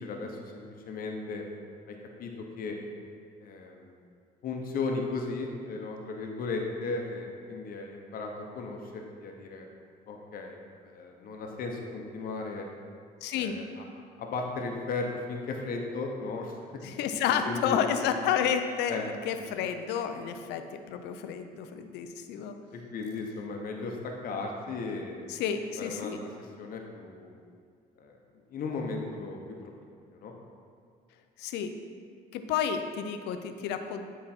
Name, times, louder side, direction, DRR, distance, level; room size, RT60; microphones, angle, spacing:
voice 1, 0.0-1.4 1.9-2.0 2.2-2.8 3.4-4.0 4.4-9.7 10.1-10.6 10.8-12.7 13.3-13.8 14.2-16.8 17.4-17.8 18.9-19.3 22.7-25.4 25.8-27.4 28.0-28.2 28.5-29.4 30.1-30.3, left 3 dB, 60° left, 1 dB, 1.0 m, -36 dB
voice 2, 13.2-13.6 16.8-22.5 25.3-26.2 31.4-31.7 32.3-34.0, left 8 dB, 85° left, 8 dB, 0.6 m, -30 dB
9.8 x 4.6 x 4.4 m, 2.2 s
cardioid pair, 110°, 17 cm